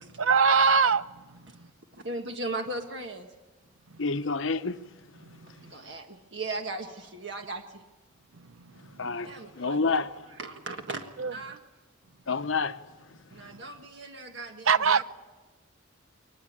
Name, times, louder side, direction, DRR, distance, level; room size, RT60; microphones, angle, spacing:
voice 1, 0.2-1.0 11.2-11.3 14.7-15.0, right 5 dB, 80° right, 0.8 m, -21 dB
voice 2, 1.9-3.3 5.7-7.8 9.2-11.6 13.3-15.0, right 2 dB, 60° right, 1.6 m, -38 dB
voice 3, 4.0-4.7 9.0-10.1 12.3-12.7, left 4 dB, 70° left, 1.0 m, -28 dB
22.5 x 20.0 x 8.8 m
head